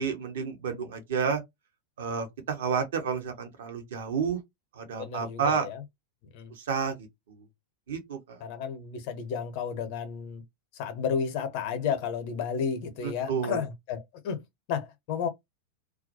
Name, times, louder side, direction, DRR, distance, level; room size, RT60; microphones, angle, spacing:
voice 1, 0.0-1.4 2.0-4.4 4.7-5.7 6.5-7.5 7.9-8.4 13.0-13.6, right 6 dB, 60° right, 0.8 m, -31 dB
voice 2, 5.0-5.8 6.3-6.5 8.4-10.4 10.8-14.4 14.7-15.3, left 7 dB, 45° left, 0.7 m, -32 dB
2.3 x 2.1 x 2.7 m
figure-of-eight pair, 90°, 0 cm